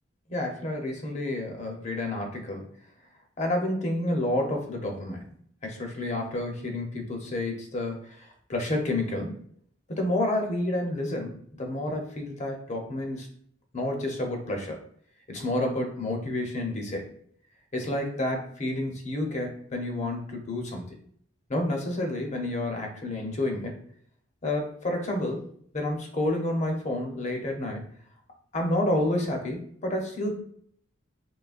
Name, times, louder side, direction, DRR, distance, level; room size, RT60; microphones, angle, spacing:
voice 1, 0.3-2.7 3.4-5.2 5.6-8.2 8.5-9.4 9.9-13.3 13.7-14.8 15.3-17.1 17.7-20.9 21.5-23.8 24.4-25.4 25.7-27.9 28.5-30.4, left 1 dB, 35° left, 2 dB, 0.7 m, -29 dB
3.8 x 3.2 x 2.4 m, 0.62 s
head